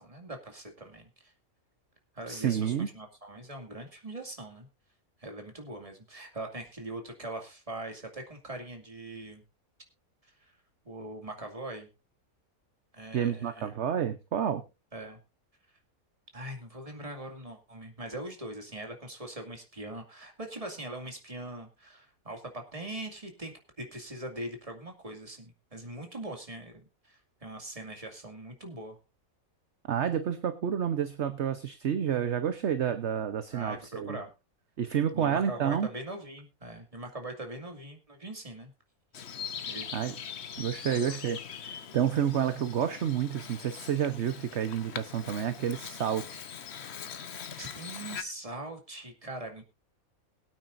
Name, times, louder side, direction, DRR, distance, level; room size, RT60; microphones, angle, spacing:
voice 1, 0.0-1.3 2.1-4.7 5.2-9.4 10.2-10.5 10.8-11.9 12.9-13.7 14.9-15.2 16.3-29.0 33.5-34.3 35.1-38.7 39.7-40.0 40.9-41.2 47.5-49.6, right 1 dB, 25° right, 3 dB, 2.4 m, -42 dB
voice 2, 2.3-2.9 13.1-14.6 29.9-34.2 34.8-35.9 39.9-40.2 40.6-46.5, right 9 dB, 55° right, 9 dB, 1.1 m, -29 dB
Bird vocalization bird call bird song, 39.1-48.2, left 7 dB, 55° left, 1.1 m, -42 dB
22.0 x 9.1 x 2.6 m, 0.27 s
omnidirectional pair, 1.5 m